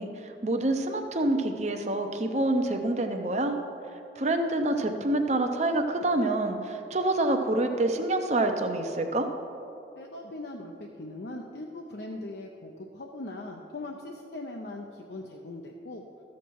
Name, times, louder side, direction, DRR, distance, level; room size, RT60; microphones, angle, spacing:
voice 1, 0.0-3.6 4.2-9.3, right 2 dB, 35° right, 5 dB, 0.7 m, -27 dB
voice 2, 10.0-16.0, left 2 dB, 60° left, 1 dB, 0.6 m, -40 dB
13.5 x 7.3 x 4.7 m, 2.8 s
head